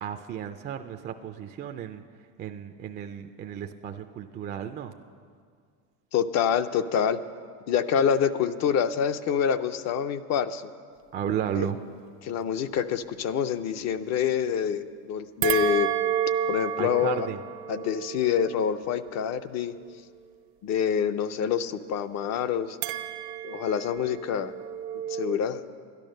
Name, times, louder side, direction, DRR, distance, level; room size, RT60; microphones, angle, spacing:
voice 1, 0.0-2.0 2.4-4.9 11.1-11.8 16.8-17.4, right 9 dB, 30° right, 7 dB, 0.3 m, -33 dB
voice 2, 6.1-7.2 7.7-10.6 11.6-11.7 12.2-15.9 16.5-17.3 17.7-19.7 20.6-22.8 23.4-24.5 25.1-25.6, left 8 dB, 45° left, 11 dB, 0.5 m, -26 dB
sound 1, 15.4-19.9 22.8-25.4, right 10 dB, 80° right, 0.8 m, -31 dB
12.0 x 10.5 x 6.5 m, 2.1 s
cardioid pair, 135°, 38 cm